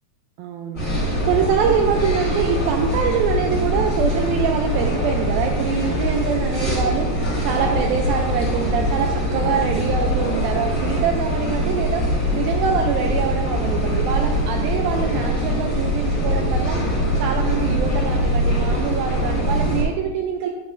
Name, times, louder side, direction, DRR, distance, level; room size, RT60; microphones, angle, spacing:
voice 1, 0.4-12.1 12.3-16.8 17.2-20.5, right 6 dB, 80° right, 3 dB, 2.2 m, -24 dB
sound 1, 0.7-19.8, equal, 20° left, 2.7 m, -22 dB
9.5 x 7.5 x 2.5 m, 1.1 s
omnidirectional pair, 4.6 m